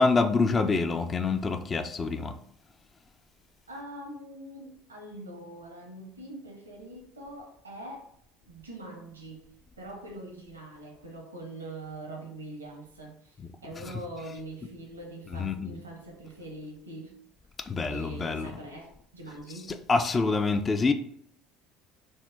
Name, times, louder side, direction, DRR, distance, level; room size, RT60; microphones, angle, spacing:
voice 1, 0.0-2.3 13.8-13.9 15.3-15.8 17.7-18.5 19.9-20.9, left 4 dB, 30° left, 0.3 m, -26 dB
voice 2, 3.7-8.1 8.5-17.2 17.9-19.8, right 1 dB, 90° right, 0.7 m, -43 dB
2.8 x 2.1 x 3.4 m
hypercardioid pair, 65°, 0 cm